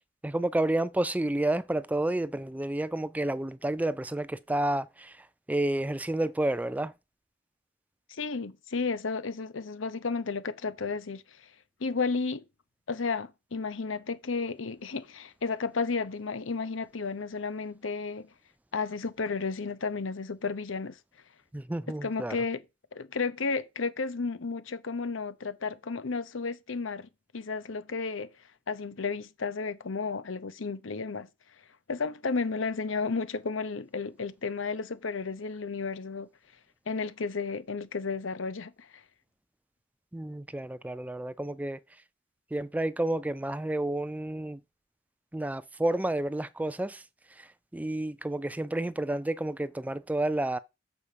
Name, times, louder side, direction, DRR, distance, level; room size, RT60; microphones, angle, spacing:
voice 1, 0.2-5.1 5.5-6.9 21.5-22.4 40.1-41.8 42.5-44.6 45.3-47.0 47.4-47.5 47.7-50.6, right 1 dB, 10° right, 0.3 m, -30 dB
voice 2, 8.1-11.5 11.8-12.4 12.9-18.3 18.7-21.0 21.9-22.6 22.9-28.3 28.7-31.3 31.9-36.3 36.9-38.9, left 4 dB, 85° left, 0.8 m, -33 dB
7.0 x 4.4 x 6.8 m
head